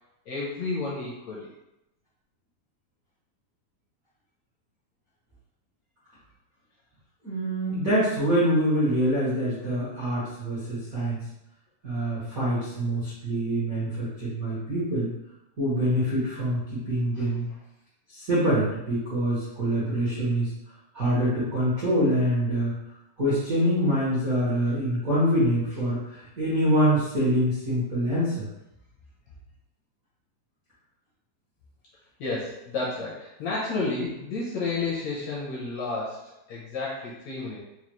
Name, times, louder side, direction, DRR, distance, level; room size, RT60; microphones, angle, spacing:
voice 1, 0.3-1.5 17.1-17.3 32.2-37.6, left 3 dB, 80° left, -5 dB, 1.6 m, -31 dB
voice 2, 7.2-11.2 11.8-15.1 15.6-17.4 18.1-20.5 20.9-22.7 23.2-28.5, equal, 85° right, -11 dB, 0.7 m, -25 dB
5.7 x 2.3 x 3.0 m, 0.90 s
omnidirectional pair, 3.8 m